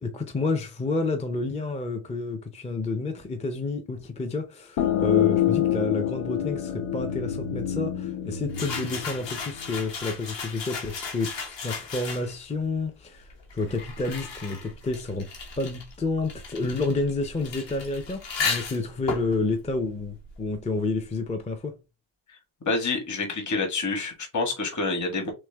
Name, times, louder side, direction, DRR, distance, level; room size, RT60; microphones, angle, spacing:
voice 1, 0.0-15.3 15.6-21.8, left 3 dB, 15° left, 0.5 m, -30 dB
sound 1, 4.8-10.2, left 11 dB, 90° left, 0.9 m, -27 dB
sound 2, 8.5-12.5 13.3-20.7, left 4 dB, 60° left, 1.5 m, -35 dB
voice 2, 22.6-25.3, left 3 dB, 35° left, 1.5 m, -28 dB
6.2 x 2.1 x 3.3 m
wide cardioid pair, 175°, 49 cm